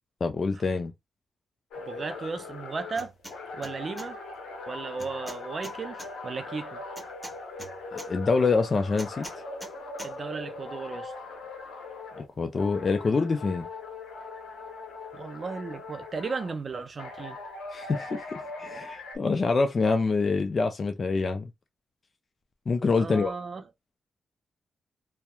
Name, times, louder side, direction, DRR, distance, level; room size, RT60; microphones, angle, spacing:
voice 1, 0.2-0.9 7.9-9.3 12.2-13.7 17.7-21.5 22.7-23.3, left 4 dB, 45° left, 0.4 m, -26 dB
sound 1, 1.7-12.3 12.5-16.6 17.0-19.2, left 3 dB, 85° left, 0.7 m, -40 dB
voice 2, 1.8-3.1 3.5-4.2 4.7-6.8 10.0-11.1 15.1-17.4 22.9-23.6, right 4 dB, 45° right, 0.3 m, -35 dB
sound 2, 2.9-3.4 3.6-4.1 5.0-6.1 7.0-8.1 9.0-9.7 10.0-10.1, equal, 5° left, 1.3 m, -42 dB
2.8 x 2.0 x 2.2 m
cardioid pair, 65°, 0 cm